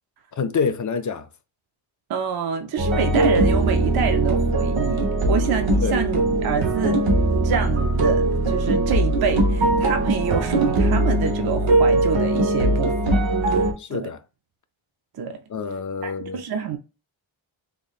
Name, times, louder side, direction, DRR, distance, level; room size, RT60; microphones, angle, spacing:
voice 1, 0.4-1.3 5.8-6.0 13.8-14.2 15.5-16.4, left 5 dB, 40° left, 0.4 m, -26 dB
voice 2, 2.1-7.0 7.4-13.7 13.9-14.1 15.1-15.4 16.0-16.8, right 6 dB, 50° right, 0.5 m, -27 dB
sound 1, 2.8-13.7, right 2 dB, 70° right, 1.2 m, -20 dB
3.7 x 3.5 x 2.3 m
wide cardioid pair, 110°, 48 cm